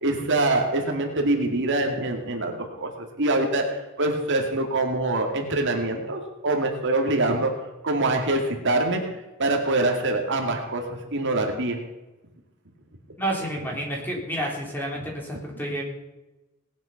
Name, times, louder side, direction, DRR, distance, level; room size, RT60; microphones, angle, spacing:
voice 1, 0.0-2.5 2.8-2.9 3.2-7.5 7.8-9.0 9.4-10.8 11.1-11.8, right 2 dB, 60° right, 3 dB, 2.2 m, -24 dB
voice 2, 13.2-15.8, right 1 dB, 10° left, -1 dB, 3.6 m, -30 dB
19.0 x 9.8 x 5.8 m, 1.0 s
head